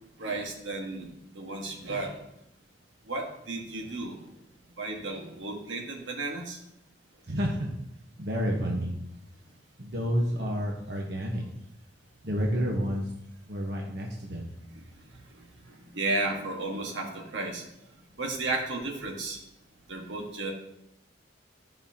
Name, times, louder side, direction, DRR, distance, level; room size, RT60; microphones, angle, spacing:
voice 1, 0.2-1.1 1.3-2.2 3.1-4.2 4.8-6.6 15.7-17.6 18.2-19.4 19.9-20.5, right 2 dB, 85° right, 1 dB, 1.6 m, -33 dB
voice 2, 7.3-7.7 8.2-8.9 9.8-11.4 12.2-13.1 13.5-14.5, equal, 60° right, -2 dB, 1.2 m, -29 dB
12.5 x 5.5 x 2.9 m, 0.81 s
head